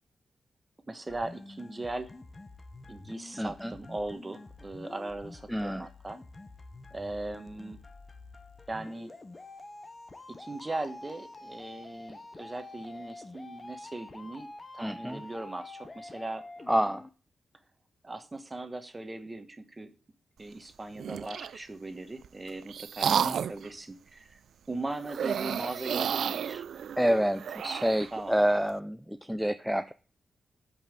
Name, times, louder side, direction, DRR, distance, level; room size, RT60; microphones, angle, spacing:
voice 1, 0.9-2.1 2.9-6.2 6.9-7.8 8.7-9.2 10.3-14.5 14.7-16.5 18.0-19.9 20.4-23.2 23.5-24.4 24.7-26.6 28.1-28.3, right 2 dB, 20° right, 9 dB, 1.2 m, -39 dB
sound 1, 1.1-17.1, left 2 dB, 20° left, 0.8 m, -47 dB
voice 2, 3.4-3.7 5.5-5.9 14.8-15.2 16.7-17.1 23.0-23.4 27.0-29.9, equal, ahead, 9 dB, 0.4 m, -28 dB
sound 2, 21.0-21.6 22.2-23.7 25.0-28.1, right 8 dB, 80° right, 0.4 m, -32 dB
8.4 x 5.5 x 7.6 m, 0.37 s
wide cardioid pair, 155°, 0 cm